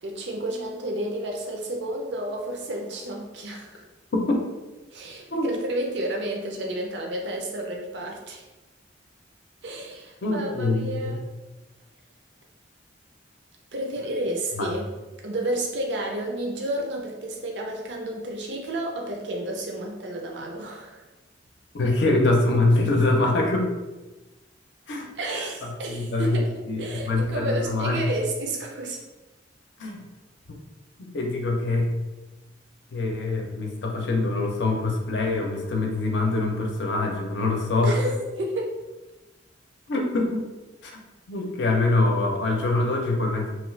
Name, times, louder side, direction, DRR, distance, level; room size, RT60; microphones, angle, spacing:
voice 1, 0.0-3.8 4.9-8.5 9.6-11.2 13.7-14.9 15.2-21.0 25.1-26.5 26.8-29.0 37.8-38.8, right 1 dB, 65° right, 0 dB, 0.5 m, -31 dB
voice 2, 4.1-4.4 5.3-5.5 10.2-11.1 14.6-14.7 21.7-23.7 24.9-25.1 25.6-26.4 26.7-28.1 29.8-30.0 31.0-31.9 32.9-37.9 39.9-40.5 40.8-41.0 41.3-43.5, left 2 dB, 65° left, 1 dB, 0.6 m, -24 dB
3.0 x 2.3 x 3.1 m, 1.1 s
head